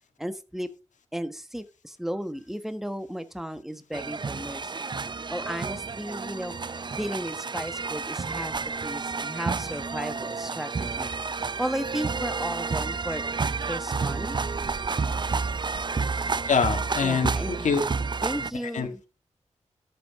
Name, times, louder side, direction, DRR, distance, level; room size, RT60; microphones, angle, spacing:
voice 1, 0.2-0.7 1.1-4.9 5.3-6.5 6.9-8.5 8.8-11.1 11.6-13.2 13.7-14.4 17.0-17.7 18.2-19.0, equal, 5° right, 10 dB, 1.4 m, -34 dB
sound 1, 3.9-18.5, right 4 dB, 40° right, 0.5 m, -30 dB
voice 2, 16.5-17.8 18.7-19.1, left 5 dB, 85° left, 5 dB, 1.8 m, -25 dB
13.5 x 7.9 x 3.7 m, 0.32 s
cardioid pair, 50°, 12 cm